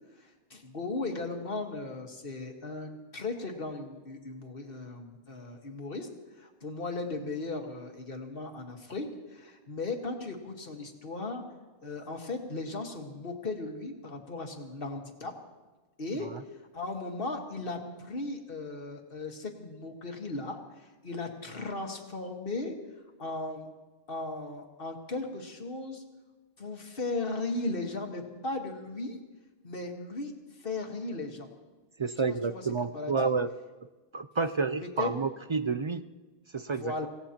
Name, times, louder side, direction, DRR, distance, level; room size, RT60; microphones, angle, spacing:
voice 1, 0.2-6.1 6.4-11.4 11.8-15.3 16.0-16.3 16.7-22.8 23.2-23.7 24.1-26.0 26.6-29.2 29.6-31.5 32.3-32.6 32.9-33.3 35.0-35.1 36.8-37.1, left 3 dB, 60° left, 3 dB, 1.8 m, -37 dB
voice 2, 32.0-33.5 34.1-36.1 36.5-37.1, right 4 dB, 45° right, 11 dB, 0.4 m, -30 dB
25.0 x 17.0 x 2.9 m, 1.2 s
omnidirectional pair, 1.0 m